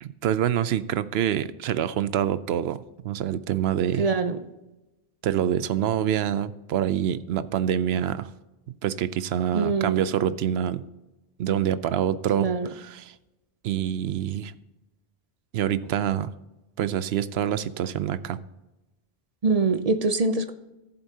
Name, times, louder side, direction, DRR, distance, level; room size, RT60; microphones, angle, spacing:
voice 1, 0.0-4.1 5.2-8.3 8.8-10.8 11.4-12.5 12.8-13.1 13.6-14.5 15.5-16.3 16.8-18.4, right 10 dB, 80° right, 14 dB, 0.8 m, -26 dB
voice 2, 4.0-4.4 9.5-10.1 12.4-12.7 19.4-20.5, right 4 dB, 45° right, 9 dB, 0.6 m, -24 dB
14.0 x 7.9 x 2.8 m, 0.99 s
omnidirectional pair, 1.1 m